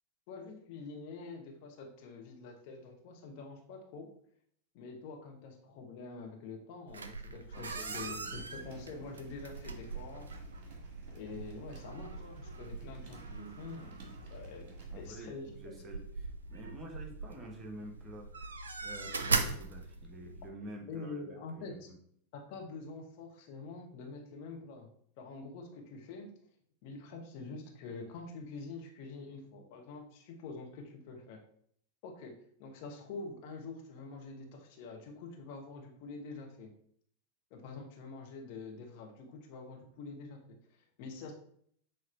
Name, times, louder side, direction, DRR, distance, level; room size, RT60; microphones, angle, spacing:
voice 1, 0.3-4.1 4.7-10.3 11.1-15.7 20.9-21.9 22.3-24.9 25.2-26.3 26.8-31.4 32.0-32.3 32.6-36.7 37.5-41.3, left 3 dB, 45° left, 1 dB, 1.2 m, -46 dB
sound 1, 6.9-20.5, right 4 dB, 70° right, 0.5 m, -41 dB
voice 2, 7.5-8.7 14.9-18.5 18.8-22.0, right 1 dB, 20° right, 1 dB, 1.3 m, -49 dB
sound 2, 7.5-15.1, right 4 dB, 40° right, 1.6 m, -53 dB
7.3 x 3.1 x 4.3 m, 0.64 s
figure-of-eight pair, 90°, 0 cm